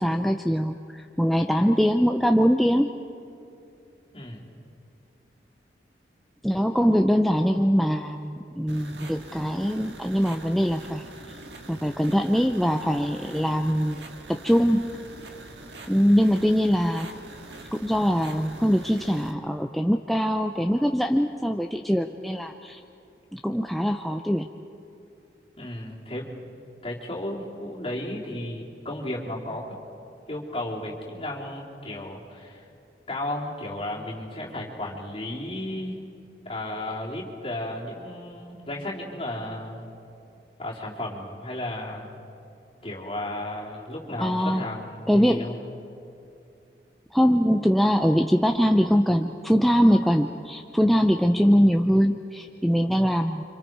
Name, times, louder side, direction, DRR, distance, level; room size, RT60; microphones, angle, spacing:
voice 1, 0.0-2.9 6.4-11.0 11.7-14.9 15.9-17.1 17.7-22.8 23.3-24.5 44.2-44.6 45.1-45.5 47.1-53.4, equal, ahead, 4 dB, 0.5 m, -22 dB
voice 2, 4.1-4.4 25.6-26.3 26.8-29.8 30.3-32.6 33.1-36.0 36.5-39.8 40.6-42.1 42.8-45.6, left 1 dB, 30° left, -4 dB, 3.6 m, -34 dB
sound 1, 8.7-19.3, right 2 dB, 85° right, 1.7 m, -44 dB
30.0 x 26.0 x 4.7 m, 2.7 s
head